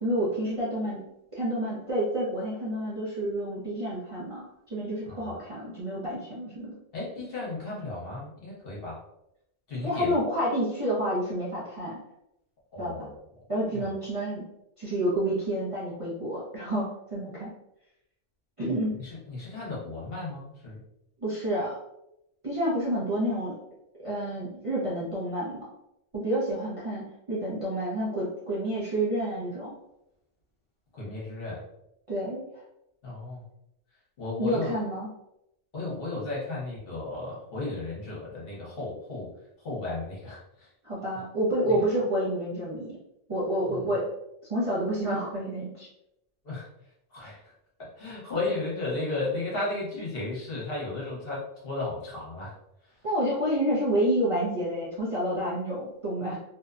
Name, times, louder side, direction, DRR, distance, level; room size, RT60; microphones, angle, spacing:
voice 1, 0.0-1.0 1.3-6.7 9.8-12.0 12.8-13.1 13.5-14.4 14.8-17.5 18.6-18.9 21.2-21.8 22.4-23.6 24.0-25.7 26.1-27.0 27.3-29.7 32.1-32.4 34.4-35.1 40.8-43.0 43.3-44.1 44.5-45.9 53.0-56.4, right 1 dB, 40° right, -8 dB, 0.5 m, -29 dB
voice 2, 6.9-9.0 9.7-10.1 12.7-13.2 13.7-13.9 18.6-20.8 30.9-31.6 33.0-33.4 34.2-34.7 35.7-39.3 39.6-40.7 41.7-41.8 43.7-43.8 46.4-46.7 47.1-47.4 47.8-52.5, left 2 dB, 55° left, -5 dB, 1.0 m, -34 dB
2.7 x 2.1 x 2.4 m, 0.84 s
omnidirectional pair, 1.2 m